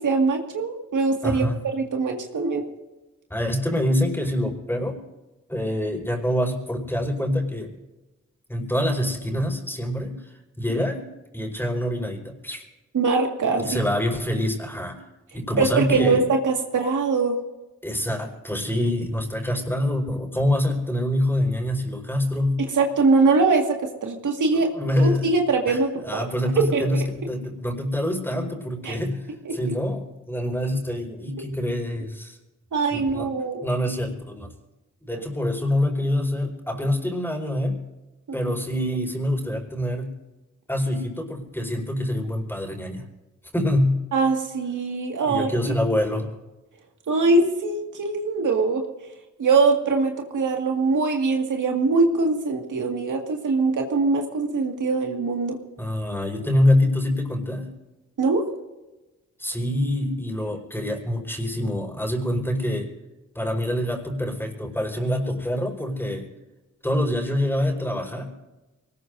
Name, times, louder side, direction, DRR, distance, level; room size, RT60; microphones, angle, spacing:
voice 1, 0.0-1.5 1.7-2.6 12.9-13.8 15.6-17.4 22.6-23.6 24.0-24.7 25.0-26.2 26.6-26.8 28.8-29.0 29.5-29.6 32.7-33.6 35.1-35.3 44.1-45.5 47.1-48.8 49.4-55.6 58.2-58.4, right 4 dB, 85° right, 2 dB, 2.1 m, -22 dB
voice 2, 1.2-1.6 3.3-5.0 5.5-7.7 8.5-10.3 10.6-11.0 11.3-12.6 13.6-15.1 15.3-16.3 17.8-22.7 24.5-25.2 25.7-32.4 32.9-33.3 33.6-34.5 35.0-37.8 38.3-40.1 40.7-43.0 43.5-44.0 45.2-46.3 55.8-57.7 59.4-62.9 63.4-66.3 66.8-68.4, left 1 dB, 5° left, 2 dB, 5.0 m, -25 dB
24.0 x 19.5 x 2.7 m, 1.1 s
cardioid pair, 70°, 30 cm